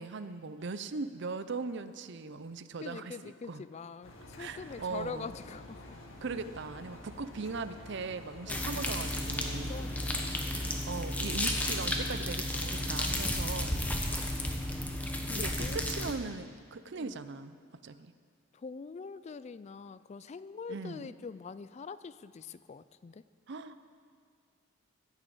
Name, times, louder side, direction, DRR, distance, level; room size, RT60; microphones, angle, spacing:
voice 1, 0.0-3.6 4.4-5.3 6.2-9.7 10.9-13.9 15.3-17.6 17.8-18.1 20.7-21.1 23.5-23.8, right 4 dB, 55° right, 13 dB, 0.6 m, -39 dB
voice 2, 2.8-6.0 8.5-9.0 9.7-10.4 14.9-15.0 15.3-16.3 17.0-17.1 18.6-23.2, left 5 dB, 35° left, 15 dB, 0.3 m, -44 dB
Engine, 4.0-10.7, left 1 dB, 75° left, 1.8 m, -49 dB
sound 1, 8.5-16.1, left 1 dB, 5° left, 1.1 m, -33 dB
15.0 x 7.1 x 8.5 m, 2.1 s
head